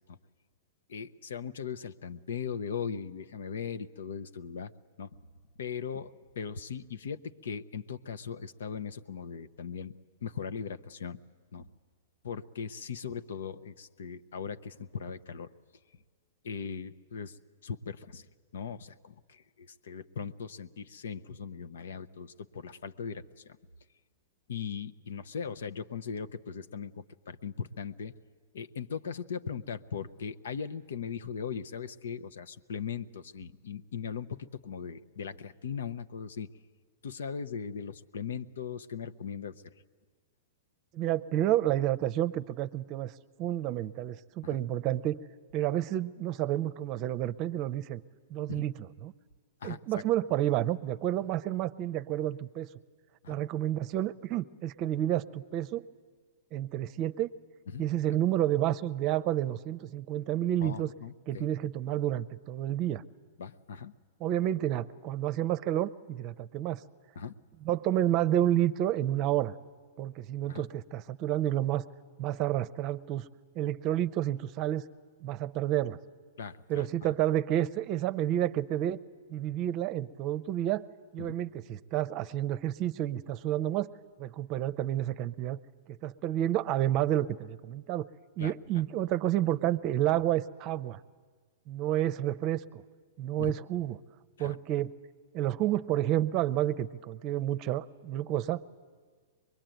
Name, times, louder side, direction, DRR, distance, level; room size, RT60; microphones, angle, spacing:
voice 1, 0.9-4.7 5.0-5.2 5.6-11.2 11.5-11.7 12.2-15.5 16.4-18.3 18.5-23.6 24.5-28.1 28.5-36.5 37.0-39.6 44.4-44.6 48.5-48.6 49.6-49.8 53.2-53.4 57.7-57.8 60.6-61.5 63.4-63.9 67.2-67.3 70.5-70.7 76.4-76.9 81.2-81.3 88.4-88.5 93.4-93.5 94.4-94.6, left 6 dB, 70° left, 11 dB, 0.8 m, -39 dB
voice 2, 40.9-43.1 43.4-45.2 45.5-48.0 48.3-49.1 49.6-52.7 53.3-55.9 56.5-57.3 57.8-60.9 61.3-63.0 64.2-66.8 67.6-69.5 70.0-71.8 72.2-73.3 73.6-74.8 75.2-76.0 76.7-79.0 79.3-80.9 81.1-83.9 84.2-85.6 86.0-88.1 88.4-91.0 91.7-92.8 93.2-94.0 94.4-94.9 95.3-98.7, right 12 dB, 40° right, 15 dB, 0.7 m, -30 dB
23.5 x 21.5 x 9.1 m, 1.6 s
hypercardioid pair, 110°, 0 cm